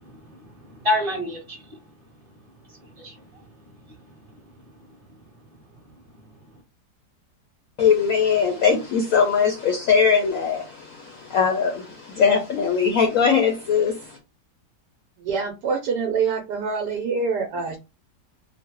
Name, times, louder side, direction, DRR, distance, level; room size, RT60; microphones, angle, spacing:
voice 1, 0.0-1.8 2.6-3.5 3.9-5.0 6.1-6.2, left 1 dB, 25° right, 1.1 m, -31 dB
voice 2, 7.8-14.2, left 6 dB, 65° left, 0.9 m, -21 dB
voice 3, 15.2-17.8, right 5 dB, 75° right, 1.2 m, -25 dB
3.1 x 2.1 x 2.9 m
omnidirectional pair, 1.9 m